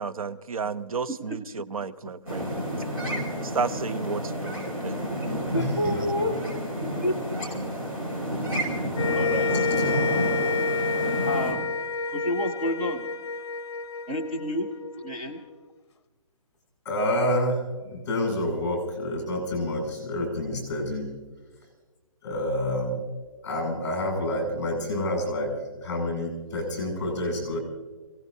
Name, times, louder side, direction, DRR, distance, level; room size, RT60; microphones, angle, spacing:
voice 1, 0.0-2.5 3.4-5.0, right 5 dB, 75° right, 13 dB, 0.8 m, -32 dB
voice 2, 1.3-1.6 5.5-6.3 7.0-7.1 9.1-9.8 11.3-11.7 12.1-13.1 14.1-14.7 15.0-15.4, equal, 15° right, -2 dB, 0.7 m, -29 dB
sound 1, 2.3-11.5, equal, 35° right, 6.2 m, -30 dB
voice 3, 5.5-6.0 16.9-21.1 22.2-23.0 23.4-27.6, left 1 dB, 30° left, 3 dB, 7.0 m, -28 dB
sound 2, 8.9-15.4, left 4 dB, 50° left, 0.9 m, -29 dB
28.5 x 18.0 x 2.8 m, 1.3 s
hypercardioid pair, 180°, 18 cm